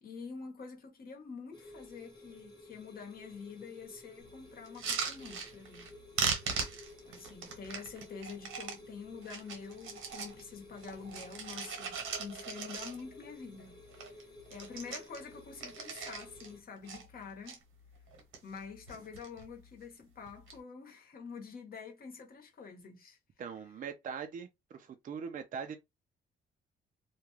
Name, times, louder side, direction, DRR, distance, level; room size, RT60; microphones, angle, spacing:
voice 1, 0.0-5.9 7.1-13.8 14.5-17.6 18.4-23.2, left 5 dB, 50° left, 1.0 m, -47 dB
sound 1, 1.5-16.6, left 2 dB, 20° left, 1.1 m, -54 dB
sound 2, 4.7-5.9 6.2-8.8 9.2-10.4 10.8-13.2 13.6-13.7 13.9-14.2 14.5-16.5 16.9-17.6 18.1-18.6 18.9-19.4 20.3-20.6, right 5 dB, 85° right, 1.0 m, -38 dB
voice 2, 23.4-25.8, right 6 dB, 40° right, 0.4 m, -41 dB
2.3 x 2.2 x 3.0 m
cardioid pair, 90°, 20 cm